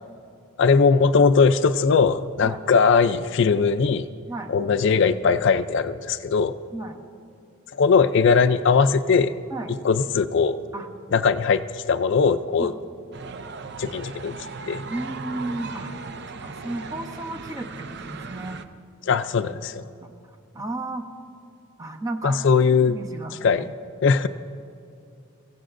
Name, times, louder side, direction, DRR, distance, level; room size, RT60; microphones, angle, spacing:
voice 1, 0.6-4.1 4.5-6.5 7.8-9.3 9.8-10.6 11.1-12.7 13.8-14.3 14.7-14.8 19.1-19.8 22.2-23.0 23.4-23.7 24.0-24.3, left 5 dB, 55° left, 12 dB, 0.4 m, -20 dB
sound 1, 13.1-18.6, right 4 dB, 55° right, 0.5 m, -37 dB
voice 2, 14.9-15.9 16.4-18.6 19.7-20.1 20.5-21.1 21.8-22.4 22.9-23.7, right 2 dB, 15° right, 3 dB, 0.8 m, -33 dB
24.0 x 15.5 x 2.6 m, 2.6 s
head